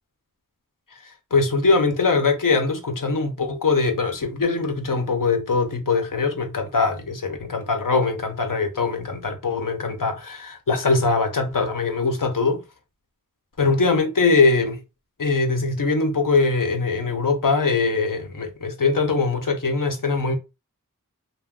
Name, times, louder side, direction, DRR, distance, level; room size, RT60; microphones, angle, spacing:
voice 1, 0.9-12.6 13.6-14.8 15.2-20.3, left 4 dB, 75° left, 0.7 m, -22 dB
2.3 x 2.1 x 3.5 m
wide cardioid pair, 40°, 32 cm